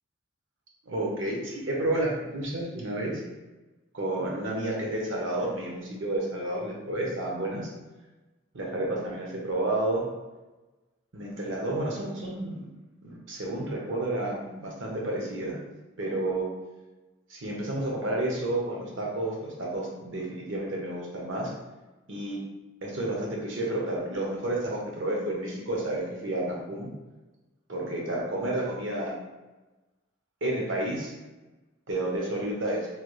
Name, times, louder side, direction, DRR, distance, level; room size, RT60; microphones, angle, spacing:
voice 1, 0.9-3.2 3.9-7.7 8.5-10.1 11.1-12.7 13.0-15.6 16.0-16.5 17.3-21.5 22.1-22.4 22.8-26.9 27.7-29.1 30.4-31.1 31.9-32.9, right 1 dB, 70° right, -2 dB, 0.8 m, -30 dB
3.3 x 2.3 x 3.1 m, 1.1 s
head